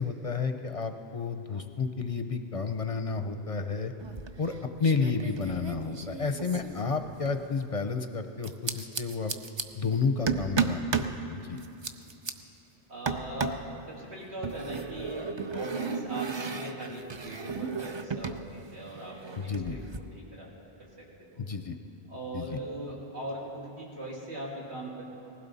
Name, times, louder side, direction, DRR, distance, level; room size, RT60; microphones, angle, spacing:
voice 1, 0.0-3.9 4.4-4.5 4.8-9.3 9.7-11.0 11.3-11.6 19.4-19.8 21.4-21.8 22.3-22.6, left 5 dB, 40° left, 7 dB, 0.6 m, -31 dB
sound 1, 4.0-4.5 4.8-7.4 8.4-9.6 10.3-11.2 11.6-12.3 13.1-13.7 14.4-18.4 18.7-20.0, right 5 dB, 35° right, 0.4 m, -34 dB
voice 2, 12.9-13.6 13.9-20.5 20.8-21.5 22.1-25.0, right 1 dB, 85° right, -5 dB, 3.2 m, -40 dB
19.5 x 15.5 x 4.1 m, 2.7 s
omnidirectional pair, 1.1 m